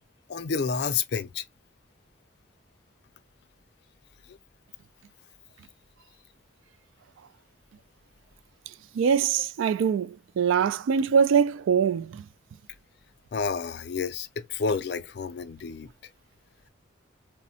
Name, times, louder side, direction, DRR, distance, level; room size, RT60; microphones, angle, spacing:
voice 1, 0.3-1.4 13.3-15.9, left 5 dB, 55° left, 0.4 m, -29 dB
voice 2, 8.9-12.2, right 7 dB, 85° right, 0.3 m, -23 dB
3.5 x 2.1 x 2.7 m
head